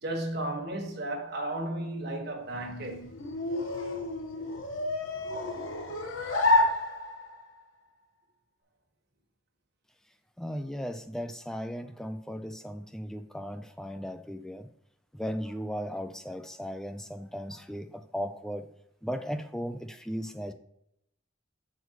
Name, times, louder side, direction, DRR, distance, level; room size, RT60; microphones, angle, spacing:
voice 1, 0.0-3.1, right 1 dB, 50° right, 1.6 m, -34 dB
sound 1, 2.4-7.5, left 2 dB, 85° left, 1.4 m, -29 dB
voice 2, 10.4-14.7 15.1-18.7 19.0-20.5, equal, 5° left, 0.4 m, -36 dB
6.3 x 5.3 x 4.6 m
head